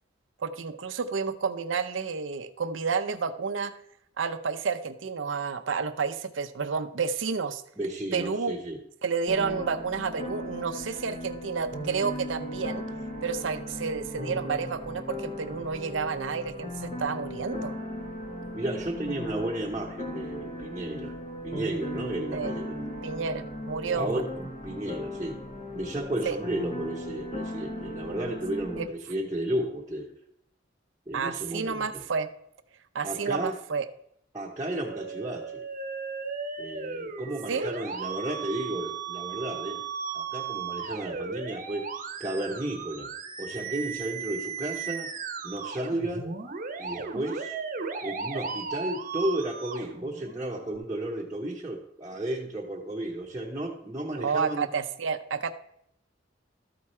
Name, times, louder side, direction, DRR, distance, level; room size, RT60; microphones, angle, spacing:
voice 1, 0.4-3.7 4.2-7.6 8.1-8.5 9.0-12.8 13.2-17.7 22.3-22.5 23.0-24.2 26.3-26.4 28.8-28.9 31.1-32.3 32.9-33.9 37.5-37.7 54.2-55.5, right 5 dB, 80° right, 9 dB, 0.6 m, -30 dB
voice 2, 7.8-8.8 18.5-21.2 21.4-22.9 23.9-25.4 25.7-30.1 31.1-32.0 33.0-33.6 34.3-35.6 36.6-39.8 40.1-41.9 42.2-43.1 43.4-45.1 45.4-46.3 46.8-47.6 48.0-54.7, right 1 dB, 15° right, -5 dB, 1.0 m, -33 dB
sound 1, 9.3-28.9, left 1 dB, 35° left, 1.3 m, -37 dB
Musical instrument, 34.8-50.8, right 5 dB, 45° right, 0.9 m, -36 dB
13.0 x 4.8 x 4.3 m, 0.73 s
head